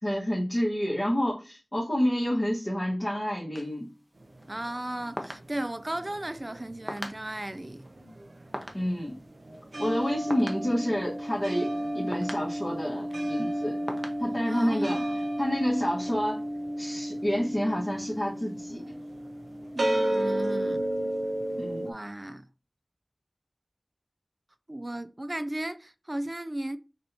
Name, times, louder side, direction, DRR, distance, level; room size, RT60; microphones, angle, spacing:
voice 1, 0.0-3.9 8.7-9.2 9.8-13.8 14.2-15.0 15.4-16.4 16.8-18.8 21.6-21.8, equal, 35° left, 1.7 m, -29 dB
sound 1, 3.6-15.5, equal, 10° right, 0.8 m, -44 dB
sound 2, 4.2-6.9 7.1-21.9, right 1 dB, 85° right, 0.6 m, -32 dB
voice 2, 4.5-7.9 14.5-15.3 19.7-20.9 21.8-22.5 24.7-26.8, right 1 dB, 35° right, 0.3 m, -35 dB
6.1 x 2.7 x 3.0 m
wide cardioid pair, 40°, 0 cm